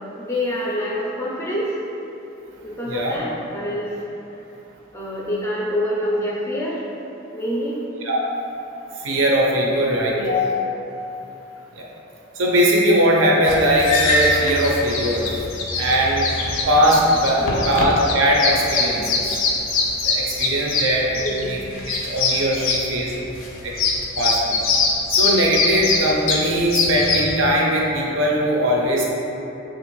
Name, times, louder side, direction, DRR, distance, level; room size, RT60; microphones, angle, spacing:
voice 1, 0.1-1.8 2.6-4.0 4.9-6.8 7.3-7.8 10.0-10.3 17.4-17.7 20.4-20.5 21.1-21.5 22.5-22.7 23.5-23.6, equal, 15° left, -5 dB, 0.4 m, -26 dB
voice 2, 9.0-10.6 11.8-11.9 12.4-15.3 15.8-16.3 16.7-19.4 20.1-21.1 21.4-23.1 23.6-23.7 24.2-24.6 25.1-29.1, equal, 75° right, -3 dB, 0.5 m, -20 dB
sound 1, 13.5-27.3, left 3 dB, 75° left, 0.4 m, -23 dB
3.4 x 2.5 x 3.0 m, 3.0 s
head